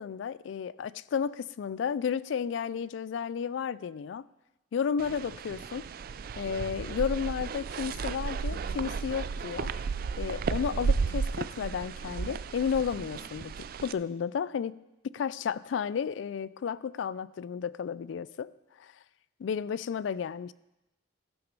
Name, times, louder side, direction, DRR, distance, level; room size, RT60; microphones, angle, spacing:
voice 1, 0.0-4.3 4.7-5.9 6.4-9.7 10.2-14.8 15.0-18.5 18.8-19.0 19.4-20.5, left 7 dB, 70° left, 18 dB, 0.3 m, -32 dB
sound 1, 5.0-13.9, right 5 dB, 50° right, 0.3 m, -34 dB
14.5 x 5.9 x 5.3 m, 0.97 s
head